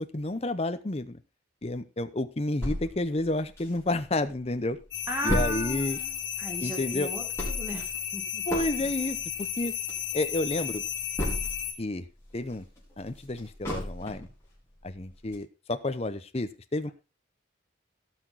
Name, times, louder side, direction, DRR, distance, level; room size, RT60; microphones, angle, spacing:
voice 1, 0.1-1.2 1.6-4.8 5.2-6.0 6.6-7.1 8.5-9.7 10.1-10.8 11.8-12.1 12.3-12.7 13.0-14.3 14.8-16.9, left 2 dB, 30° left, 10 dB, 0.7 m, -30 dB
sound 1, 2.6-4.2 4.5-4.6 4.8-11.8 12.2-14.4 14.8-14.9 15.3-15.4, equal, 15° left, 4.7 m, -34 dB
sound 2, 4.9-11.7, left 9 dB, 65° left, 2.1 m, -34 dB
voice 2, 5.1-8.4, equal, 10° right, 0 dB, 3.7 m, -36 dB
17.0 x 6.1 x 4.0 m, 0.29 s
head